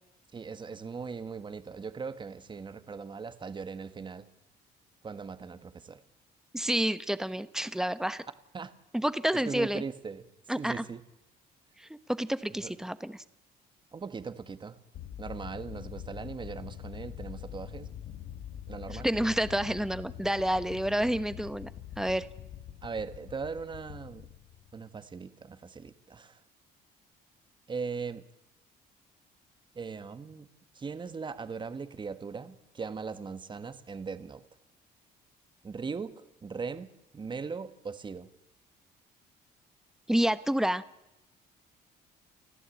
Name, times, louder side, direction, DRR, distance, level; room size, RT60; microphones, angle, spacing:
voice 1, 0.3-4.3 5.0-6.0 8.5-8.7 9.5-10.2 10.6-11.0 12.6-12.7 13.9-14.8 15.2-17.9 18.7-19.1 22.8-24.2 24.7-26.4 27.7-28.2 29.7-30.5 30.7-34.4 35.6-38.3, right 5 dB, 30° right, 11 dB, 1.6 m, -39 dB
voice 2, 6.5-8.2 8.9-9.8 10.5-10.8 11.8-13.2 18.9-21.7 22.0-22.3 40.1-40.8, right 1 dB, 5° right, 14 dB, 1.1 m, -29 dB
sound 1, 14.9-25.0, left 10 dB, 70° left, 1.7 m, -44 dB
30.0 x 14.0 x 8.5 m, 0.94 s
cardioid pair, 110°, 17 cm